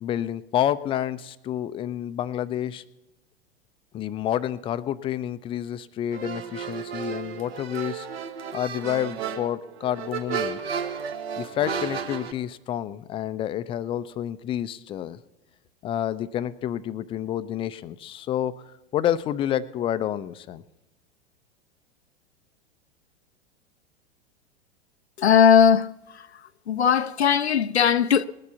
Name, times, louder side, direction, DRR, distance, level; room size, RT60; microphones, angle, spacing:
voice 1, 0.0-2.8 3.9-8.1 8.5-10.6 11.4-15.2 15.8-20.6, left 11 dB, 15° left, 0.4 m, -29 dB
sound 1, 6.1-12.3, right 7 dB, 65° right, 1.4 m, -33 dB
voice 2, 25.2-25.9 26.7-28.2, left 8 dB, 80° left, 0.5 m, -18 dB
19.5 x 6.9 x 6.9 m
figure-of-eight pair, 90°, 32 cm